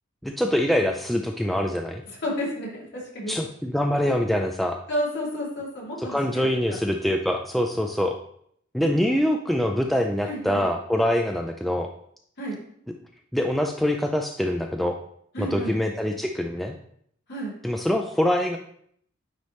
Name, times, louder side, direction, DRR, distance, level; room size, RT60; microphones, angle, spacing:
voice 1, 0.2-2.0 3.3-4.8 6.1-8.1 8.7-11.9 13.3-15.0 15.4-16.7 17.6-18.6, equal, ahead, 3 dB, 0.3 m, -24 dB
voice 2, 2.1-3.3 4.9-6.8 10.2-10.6 12.4-12.5 15.3-15.7 17.3-17.5, equal, 60° left, -6 dB, 2.6 m, -31 dB
9.4 x 3.3 x 3.1 m, 0.66 s
head